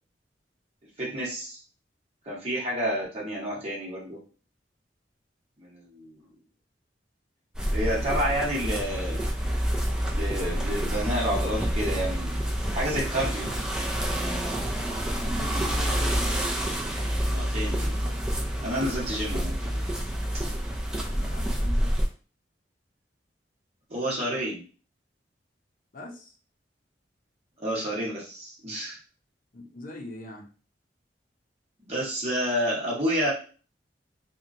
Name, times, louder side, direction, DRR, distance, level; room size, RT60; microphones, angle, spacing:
voice 1, 1.0-1.6 2.2-4.2 5.6-6.2 7.7-9.2 10.1-12.4 12.7-13.5 17.3-18.1 18.6-19.5 23.9-24.6 27.6-29.0 31.8-33.3, equal, 35° right, -5 dB, 0.9 m, -29 dB
sound 1, 7.5-22.1, equal, 5° right, 0.4 m, -28 dB
voice 2, 14.9-16.5 21.2-22.0 25.9-26.3 29.5-30.5, left 2 dB, 50° left, 1 dB, 0.6 m, -41 dB
2.8 x 2.2 x 2.5 m, 0.38 s
head